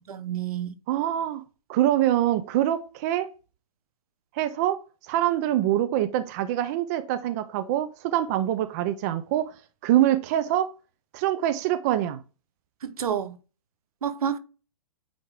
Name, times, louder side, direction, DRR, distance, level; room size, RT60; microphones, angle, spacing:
voice 1, 0.1-0.7 12.8-13.4 14.0-14.4, right 8 dB, 80° right, 1.1 m, -29 dB
voice 2, 0.9-1.4 1.7-3.3 4.3-4.8 5.1-9.5 9.8-10.7 11.1-12.2, right 12 dB, 30° right, 0.5 m, -24 dB
8.6 x 3.5 x 3.5 m
hypercardioid pair, 155°, 19 cm